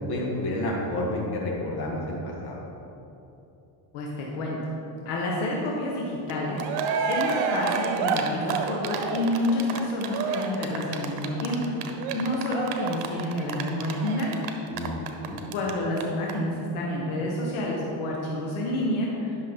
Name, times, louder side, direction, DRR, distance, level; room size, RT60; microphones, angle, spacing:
voice 1, 0.0-2.2 2.4-2.6 14.7-15.4, left 1 dB, 50° left, -2 dB, 2.0 m, -30 dB
voice 2, 3.9-4.6 5.0-6.6 7.1-14.3 15.5-19.4, left 1 dB, 75° left, -3 dB, 1.5 m, -29 dB
Cheering, 6.3-6.4 6.6-15.7 16.0-16.1 16.3-16.4, right 6 dB, 85° right, 0.9 m, -29 dB
11.0 x 6.2 x 3.8 m, 2.9 s
cardioid pair, 100°, 50 cm